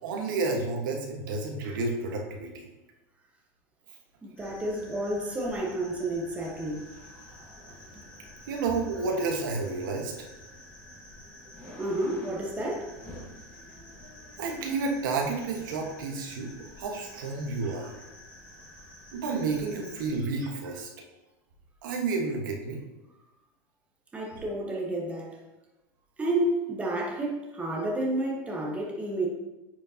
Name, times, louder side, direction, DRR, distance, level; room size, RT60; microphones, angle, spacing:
voice 1, 0.0-2.7 8.5-10.1 14.4-16.5 16.8-17.9 19.1-20.9 21.8-22.8 24.3-24.4, right 3 dB, 80° right, 1 dB, 1.4 m, -30 dB
voice 2, 4.2-6.9 11.8-12.9 24.1-25.4 26.2-29.3, right 1 dB, 10° right, -1 dB, 1.1 m, -30 dB
sound 1, 4.4-20.2, left 1 dB, 10° left, 2.0 m, -48 dB
9.3 x 5.1 x 2.8 m, 1.0 s
supercardioid pair, 145°, 11 cm